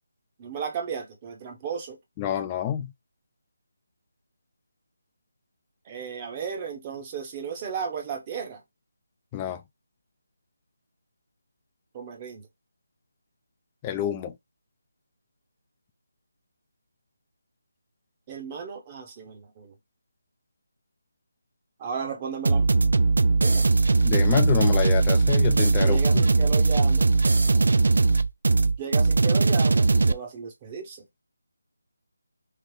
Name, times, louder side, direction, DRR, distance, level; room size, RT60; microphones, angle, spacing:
voice 1, 0.4-2.0 5.9-8.6 11.9-12.5 18.3-19.7 21.8-22.7 23.4-23.7 25.8-27.1 27.4-27.6 28.8-31.0, right 6 dB, 20° right, 0.8 m, -34 dB
voice 2, 2.2-2.9 9.3-9.6 13.8-14.3 24.0-26.2, left 10 dB, 15° left, 0.4 m, -27 dB
sound 1, 22.4-30.1, right 3 dB, 60° right, 0.4 m, -20 dB
3.3 x 2.4 x 3.7 m
figure-of-eight pair, 165°, 0 cm